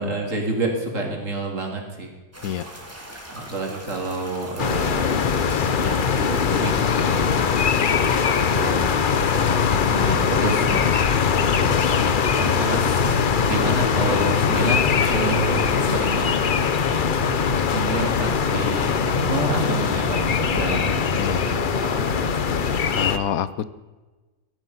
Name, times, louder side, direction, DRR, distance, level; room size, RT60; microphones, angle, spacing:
voice 1, 0.0-2.1 3.3-5.3 5.8-7.3 8.5-10.7 11.6-13.0 13.5-16.4 17.7-22.8, right 2 dB, 55° right, 1 dB, 3.1 m, -29 dB
sound 1, 2.3-8.9, equal, 10° right, 2.3 m, -40 dB
sound 2, 4.6-23.2, left 6 dB, 45° left, 0.7 m, -21 dB
voice 2, 21.2-21.5 22.9-23.7, left 9 dB, 70° left, 16 dB, 1.1 m, -27 dB
16.0 x 12.0 x 5.7 m, 1.2 s
omnidirectional pair, 1.6 m